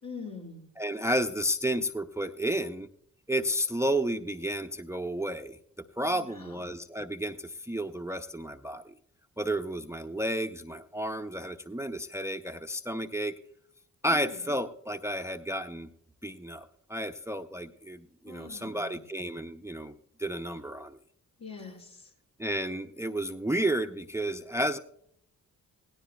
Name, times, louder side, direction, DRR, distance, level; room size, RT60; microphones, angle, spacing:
voice 1, 0.0-0.7 6.0-6.5 14.0-14.4 18.2-18.9 21.4-22.1, left 5 dB, 70° left, -2 dB, 4.3 m, -44 dB
voice 2, 0.8-2.9 3.3-5.6 6.0-8.9 9.4-13.3 14.0-15.9 16.2-19.9 20.2-21.0 22.4-24.8, right 1 dB, 10° right, 8 dB, 0.6 m, -32 dB
17.0 x 17.0 x 2.3 m, 0.70 s
supercardioid pair, 50°, 36 cm